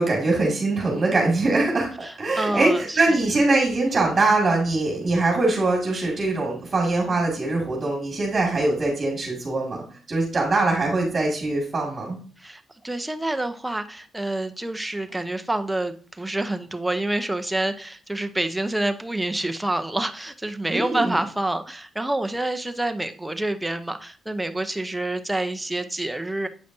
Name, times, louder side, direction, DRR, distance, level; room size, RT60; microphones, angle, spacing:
voice 1, 0.0-9.8 10.1-12.2 20.7-21.1, right 2 dB, 30° right, -2 dB, 2.2 m, -22 dB
voice 2, 2.0-3.0 12.4-26.5, right 1 dB, 10° right, 7 dB, 0.6 m, -27 dB
8.0 x 5.0 x 2.7 m, 0.42 s
cardioid pair, 90°, 0 cm